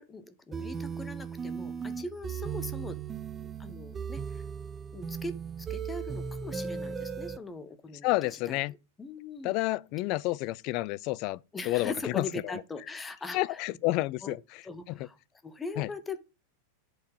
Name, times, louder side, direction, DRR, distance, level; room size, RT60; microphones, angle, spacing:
voice 1, 0.0-3.0 3.4-4.4 4.9-9.5 11.5-13.6 14.2-14.3 14.6-15.2 15.4-16.2, left 3 dB, 15° left, 1.0 m, -41 dB
sound 1, 0.5-7.4, right 6 dB, 20° right, 0.8 m, -37 dB
voice 2, 8.0-8.7 9.4-11.4 11.6-12.2 13.3-14.4 14.9-15.0 15.8-15.9, left 19 dB, 40° left, 0.4 m, -29 dB
8.0 x 4.6 x 5.3 m
figure-of-eight pair, 90°, 0 cm